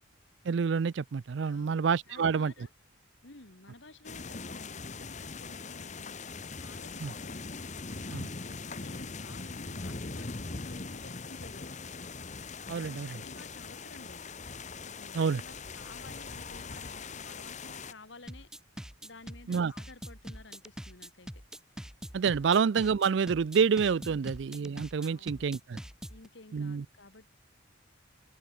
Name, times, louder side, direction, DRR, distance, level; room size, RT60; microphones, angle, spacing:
voice 1, 0.4-2.5 7.0-7.1 8.1-8.2 12.7-13.2 15.1-15.4 19.5-19.7 22.1-25.8 26.5-26.8, right 6 dB, 60° right, 0.4 m, -28 dB
voice 2, 1.4-1.8 2.1-2.7 3.2-6.2 6.6-7.4 7.8-11.8 12.7-14.3 14.8-18.5 19.0-21.4 24.0-24.3 25.0-25.4 26.1-27.3, left 2 dB, 65° left, 2.2 m, -53 dB
sound 1, 4.0-17.9, left 4 dB, 35° left, 1.2 m, -41 dB
sound 2, 18.3-26.3, equal, 5° right, 0.9 m, -43 dB
head